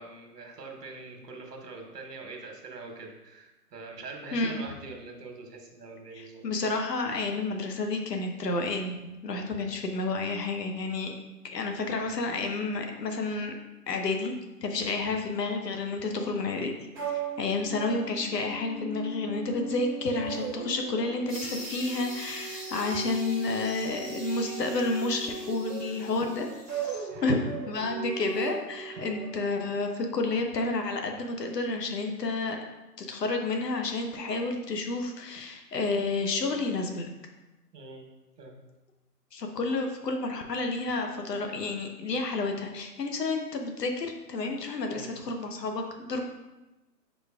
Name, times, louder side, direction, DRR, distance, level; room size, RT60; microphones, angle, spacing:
voice 1, 0.0-6.4 9.6-9.8 17.6-17.8 27.1-27.4 28.9-29.0 37.7-38.1 38.4-38.6 44.9-45.2, right 3 dB, 75° right, 2 dB, 1.2 m, -44 dB
voice 2, 6.1-11.2 11.4-13.5 13.9-14.4 14.6-16.8 17.1-26.5 26.7-32.6 33.0-37.1 39.3-46.2, left 3 dB, 80° left, 4 dB, 0.8 m, -30 dB
sound 1, 16.9-29.3, right 5 dB, 15° right, 1.0 m, -38 dB
sound 2, 21.3-26.9, equal, ahead, 0.4 m, -43 dB
5.1 x 3.8 x 2.4 m, 1.0 s
hypercardioid pair, 155°, 48 cm